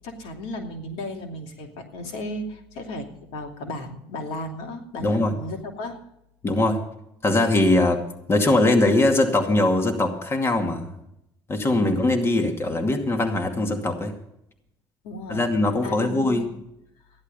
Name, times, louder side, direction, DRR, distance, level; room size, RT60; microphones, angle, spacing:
voice 1, 0.0-3.1 3.3-6.0 11.8-12.0 15.0-15.4 15.8-16.5, left 1 dB, 80° left, 3 dB, 2.8 m, -35 dB
voice 2, 5.0-5.4 6.4-6.8 7.2-10.9 11.5-14.1 15.3-16.5, left 2 dB, 25° left, 4 dB, 2.3 m, -21 dB
14.5 x 11.0 x 5.4 m, 0.79 s
supercardioid pair, 95°, 10 cm